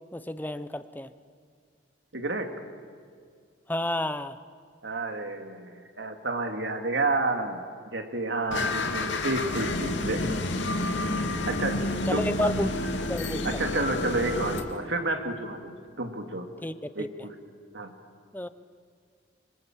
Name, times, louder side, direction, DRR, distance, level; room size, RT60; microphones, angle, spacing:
voice 1, 0.1-1.1 3.7-4.4 12.1-12.7 13.0-13.7 16.6-17.1 18.3-18.5, left 1 dB, 10° left, 12 dB, 0.8 m, -31 dB
voice 2, 2.1-2.5 4.8-7.6 7.9-10.4 11.5-12.5 13.4-16.5 17.0-17.3 17.7-17.9, right 2 dB, 80° right, 5 dB, 2.5 m, -30 dB
sound 1, 8.5-14.6, left 2 dB, 85° left, 2.5 m, -29 dB
25.5 x 25.0 x 7.4 m, 2.2 s
head